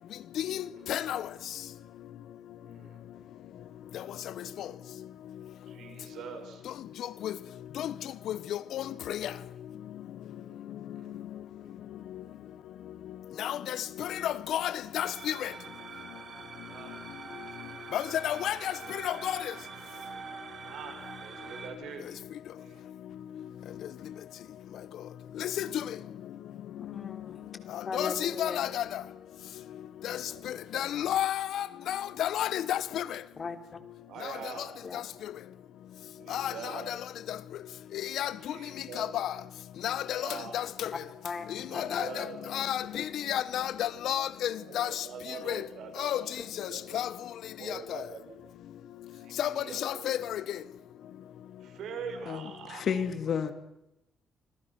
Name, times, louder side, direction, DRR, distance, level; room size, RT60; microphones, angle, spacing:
voice 1, 0.9-1.2 7.2-7.3 7.8-7.9 8.7-8.8 13.4-13.6 14.0-15.5 17.9-18.5 19.0-19.3 25.4-25.7 27.9-28.8 30.7-33.0 36.3-36.5 38.2-38.3 39.0-39.3 39.8-40.2 40.5-40.6 41.9-42.1 42.5-42.8 43.3-44.5 44.7-44.9 45.5-45.6 46.0-46.2 46.9-47.1 49.4-49.5 49.8-50.2, left 11 dB, 75° left, 1.1 m, -30 dB
voice 2, 2.6-3.0 4.7-4.8 5.7-6.6 8.5-8.6 10.3-11.3 11.6-11.7 12.2-12.4 14.0-14.1 16.6-17.0 20.6-22.1 22.6-22.8 23.7-23.8 25.4-25.6 30.1-30.6 34.1-34.7 36.2-36.9 38.4-39.1 40.0-40.6 41.6-42.4 44.5-46.3 46.6-46.8 47.6-48.5 49.1-50.1 51.8-52.8, right 6 dB, 75° right, 6.1 m, -44 dB
sound 1, 15.0-21.7, right 5 dB, 50° right, 5.2 m, -44 dB
voice 3, 26.8-27.5 27.8-28.7 33.4-33.8 34.8-35.0 40.9-41.4 41.7-42.3 42.9-43.0 46.4-46.5, left 5 dB, 40° left, 3.2 m, -38 dB
voice 4, 52.3-53.5, left 7 dB, 60° left, 2.5 m, -31 dB
26.0 x 26.0 x 6.1 m
cardioid pair, 90°, 0 cm